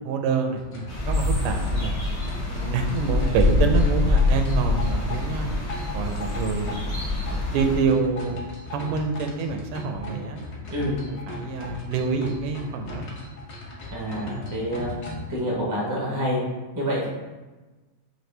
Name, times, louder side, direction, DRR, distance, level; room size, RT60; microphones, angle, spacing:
voice 1, 0.1-1.9 2.5-5.5 5.9-6.8 7.3-8.4 8.7-10.4 11.1-13.2, right 5 dB, 85° right, 5 dB, 1.5 m, -27 dB
sound 1, 0.5-15.3, left 1 dB, 75° left, 0.6 m, -38 dB
sound 2, 0.9-7.8, left 2 dB, 25° left, 1.1 m, -24 dB
voice 2, 13.9-14.9 15.3-16.4 16.7-17.1, equal, 25° right, -4 dB, 0.4 m, -27 dB
5.9 x 2.8 x 3.2 m, 1.2 s
omnidirectional pair, 2.4 m